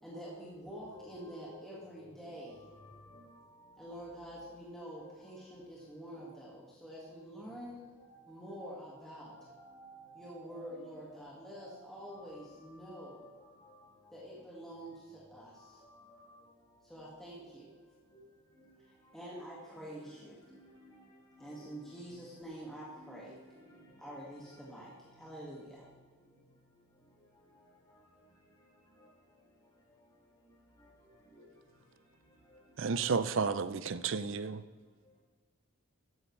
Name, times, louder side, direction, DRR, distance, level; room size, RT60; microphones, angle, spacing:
voice 1, 0.0-2.6 3.8-7.8 8.3-9.3 10.1-13.2 14.1-15.8 16.8-17.7 19.1-20.4 21.4-23.3 24.0-25.8, equal, ahead, 1.8 m, -47 dB
voice 2, 0.9-1.9 2.8-3.2 4.4-4.5 9.2-11.7 12.1-13.3 13.6-13.7 19.3-19.4 19.8-20.0 20.5-21.0 21.3-22.0 22.9-23.4 23.7-23.8 32.9-33.1, equal, 15° left, 3.1 m, -55 dB
voice 3, 32.8-34.6, right 5 dB, 60° right, 0.5 m, -32 dB
12.5 x 9.7 x 3.2 m
head